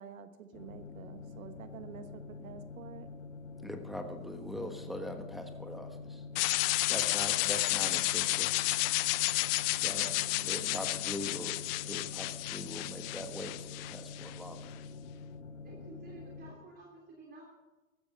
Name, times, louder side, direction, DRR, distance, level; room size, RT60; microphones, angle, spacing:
voice 1, 0.0-3.1 10.0-10.8, right 7 dB, 80° right, 10 dB, 1.3 m, -49 dB
sound 1, 0.5-16.5, left 4 dB, 65° left, 2.3 m, -46 dB
voice 2, 3.6-6.2 6.9-8.5 9.8-10.1 10.4-14.8, left 1 dB, ahead, 5 dB, 1.3 m, -42 dB
sound 2, 6.4-14.4, left 20 dB, 45° left, 0.7 m, -31 dB
voice 3, 15.6-17.4, right 3 dB, 25° right, -1 dB, 3.2 m, -52 dB
15.5 x 13.0 x 5.5 m, 1.1 s
hypercardioid pair, 105°, 41 cm